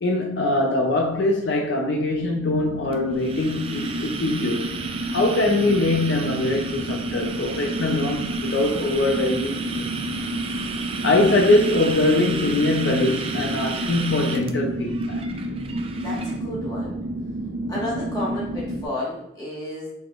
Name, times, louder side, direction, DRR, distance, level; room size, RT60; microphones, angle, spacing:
voice 1, 0.0-4.7 5.1-9.9 11.0-15.2, left 2 dB, 75° left, 0.5 m, -22 dB
sound 1, 2.2-18.9, right 1 dB, 90° right, 0.6 m, -30 dB
sound 2, 2.9-16.4, right 5 dB, 30° right, 0.3 m, -34 dB
voice 2, 15.9-17.0 17.7-19.9, left 1 dB, 20° left, 1.4 m, -32 dB
4.8 x 3.8 x 2.4 m
head